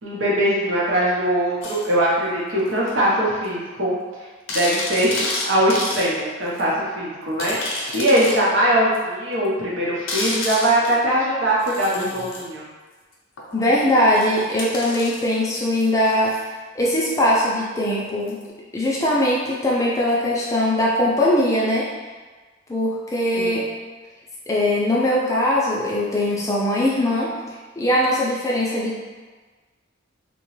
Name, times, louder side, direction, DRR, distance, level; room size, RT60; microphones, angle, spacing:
voice 1, 0.0-3.9 4.5-7.6 7.9-12.6 23.3-23.6, right 1 dB, 75° right, -5 dB, 0.8 m, -21 dB
sound 1, 1.6-1.9 2.9-3.0 3.4-3.5 3.8-3.9 4.5-6.1 6.6-6.7 7.4-8.4 8.9-9.0 10.1-11.0 11.6-12.4 13.4-16.4 18.3-18.4, left 2 dB, 80° left, 0.6 m, -30 dB
voice 2, 13.5-16.4 16.7-18.4 18.7-21.9 22.7-23.7 24.5-27.3 27.8-29.0, left 1 dB, 15° left, -5 dB, 0.4 m, -21 dB
2.8 x 2.2 x 3.0 m, 1.4 s
head